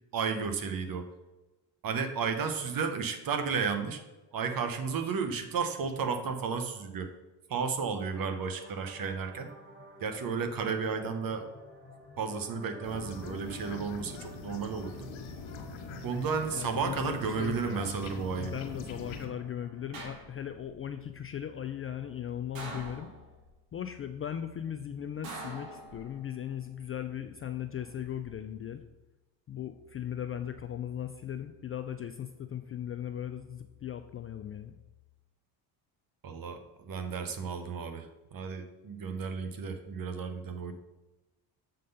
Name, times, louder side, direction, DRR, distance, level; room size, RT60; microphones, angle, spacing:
voice 1, 0.1-1.1 1.8-4.0 4.3-7.1 7.5-9.5 10.0-11.5 12.2-15.1 16.0-18.5 36.2-40.7, right 5 dB, 45° right, 7 dB, 1.1 m, -33 dB
sound 1, 8.1-20.1, left 1 dB, 25° right, 1.9 m, -52 dB
sound 2, 12.8-19.3, left 4 dB, 70° left, 1.4 m, -43 dB
voice 2, 16.5-23.1 23.7-28.8 29.5-34.7, left 9 dB, 30° left, 8 dB, 0.4 m, -38 dB
sound 3, 19.9-20.7 22.6-23.5 25.2-26.4 27.8-28.3, right 2 dB, 80° right, 1.7 m, -44 dB
7.4 x 3.9 x 5.4 m, 1.1 s
supercardioid pair, 80°, 50 cm